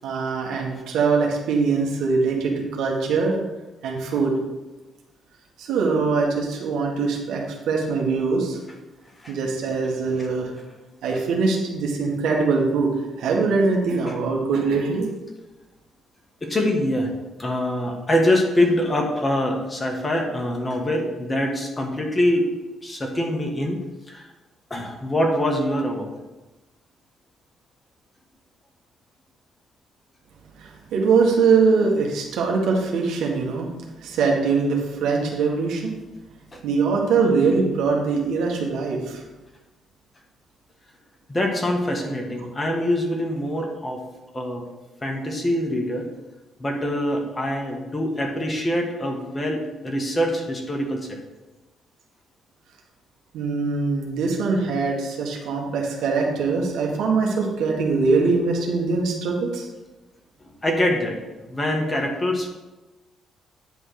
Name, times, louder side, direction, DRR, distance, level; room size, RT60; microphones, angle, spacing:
voice 1, 0.0-3.4 3.8-4.3 5.6-8.6 9.3-10.5 11.0-12.9 13.2-15.1 30.6-33.7 34.0-35.9 36.6-39.2 53.3-59.7, right 4 dB, 85° right, -1 dB, 1.7 m, -22 dB
voice 2, 16.4-17.1 17.4-22.5 22.8-23.8 24.1-24.3 24.7-26.1 36.5-36.6 41.3-44.0 44.3-44.7 45.0-46.1 46.6-51.2 60.6-61.2 61.5-62.5, left 1 dB, 20° left, 1 dB, 1.7 m, -24 dB
9.9 x 3.6 x 6.5 m, 1.1 s
cardioid pair, 90°, 0 cm